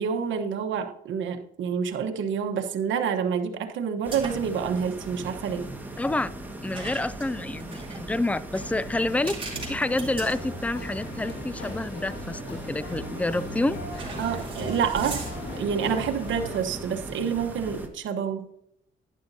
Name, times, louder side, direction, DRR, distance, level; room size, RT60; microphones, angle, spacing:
voice 1, 0.0-5.7 14.2-15.2 15.6-18.5, right 7 dB, 75° right, 1.2 m, -28 dB
sound 1, 4.0-17.9, right 1 dB, 10° right, 1.6 m, -39 dB
sound 2, 4.1-4.6 4.9-5.1 6.7-11.1 11.6-11.7 12.9-13.3 13.9-15.6, right 3 dB, 25° right, 3.8 m, -40 dB
voice 2, 6.0-6.3 6.6-14.1, left 2 dB, 5° left, 0.4 m, -28 dB
sound 3, 8.5-16.6, left 1 dB, 60° left, 2.9 m, -39 dB
11.0 x 10.0 x 2.7 m
cardioid pair, 90°, 20 cm